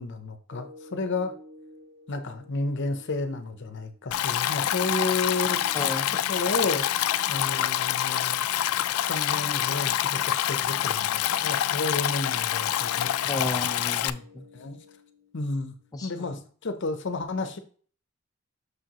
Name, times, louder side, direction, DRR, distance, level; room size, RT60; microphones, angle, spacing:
voice 1, 0.0-1.3 2.1-5.6 6.3-6.9 7.3-8.4 9.0-13.1 14.5-14.8 15.3-15.7 16.0-17.6, left 3 dB, 60° left, 9 dB, 0.7 m, -31 dB
sound 1, 0.5-16.5, left 2 dB, 50° right, 1.8 m, -53 dB
Stream, 4.1-14.1, left 12 dB, 90° left, 0.3 m, -26 dB
voice 2, 5.7-6.1 13.3-14.4 15.9-16.4, left 2 dB, 15° left, 3 dB, 0.5 m, -33 dB
6.3 x 5.0 x 3.0 m, 0.44 s
head